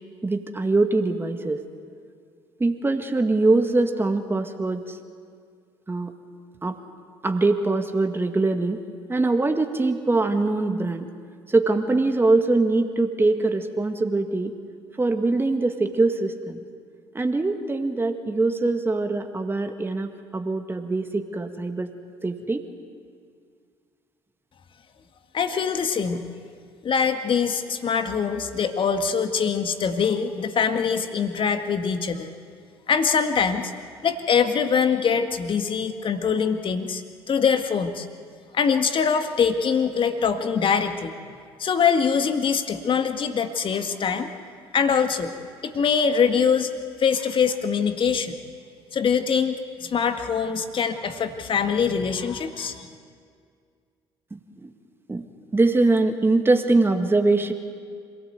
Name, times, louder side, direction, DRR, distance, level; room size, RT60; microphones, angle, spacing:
voice 1, 0.2-1.6 2.6-5.0 5.9-6.1 6.6-6.8 7.2-8.8 9.1-11.1 11.5-14.5 15.0-16.6 17.1-21.9 22.2-22.6 54.3-54.7 55.1-55.3 55.5-57.5, right 2 dB, 15° right, 6 dB, 2.0 m, -23 dB
voice 2, 25.3-26.3 26.8-32.3 32.9-33.7 34.0-38.1 38.5-41.1 41.6-44.3 44.7-45.3 45.6-46.7 47.0-48.3 48.9-52.9, left 6 dB, 40° left, 7 dB, 1.9 m, -23 dB
26.5 x 17.5 x 8.2 m, 2.2 s
figure-of-eight pair, 55°, 13 cm